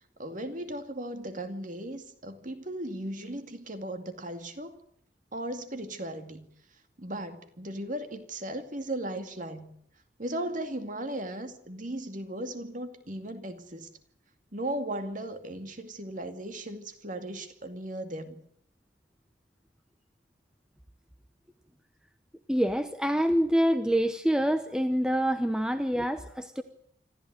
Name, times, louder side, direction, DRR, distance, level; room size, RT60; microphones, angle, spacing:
voice 1, 0.2-4.8 5.3-6.5 7.0-9.7 10.2-13.9 14.5-18.4, right 1 dB, 40° right, 8 dB, 2.4 m, -37 dB
voice 2, 22.5-26.6, equal, 5° right, 9 dB, 0.8 m, -26 dB
26.0 x 14.0 x 9.3 m, 0.70 s
head